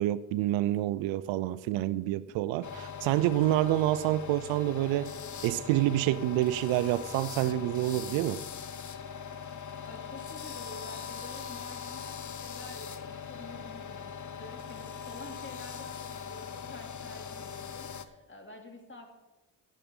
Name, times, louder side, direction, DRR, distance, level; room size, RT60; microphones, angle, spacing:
voice 1, 0.0-5.1 5.4-8.4, right 14 dB, 80° right, 0.6 m, -28 dB
sound 1, 2.6-18.0, left 7 dB, 40° left, 1.0 m, -41 dB
voice 2, 9.8-19.2, left 2 dB, 25° left, 2.9 m, -49 dB
11.5 x 8.5 x 5.4 m
hypercardioid pair, 50°, 45 cm